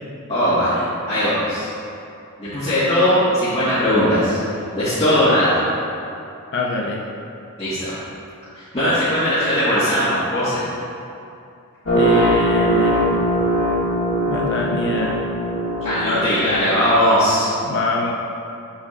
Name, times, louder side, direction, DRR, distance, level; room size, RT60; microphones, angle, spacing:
voice 1, 0.3-1.7 2.4-4.4 4.7-5.6 7.6-8.0 8.5-10.6 15.8-17.5, equal, 25° left, -15 dB, 1.6 m, -19 dB
voice 2, 6.5-7.0 12.0-13.0 14.3-15.2 17.6-18.1, left 3 dB, 50° left, -1 dB, 0.5 m, -24 dB
sound 1, 11.9-16.9, right 1 dB, 75° left, 1.3 m, -20 dB
7.4 x 7.2 x 2.5 m, 2.6 s
head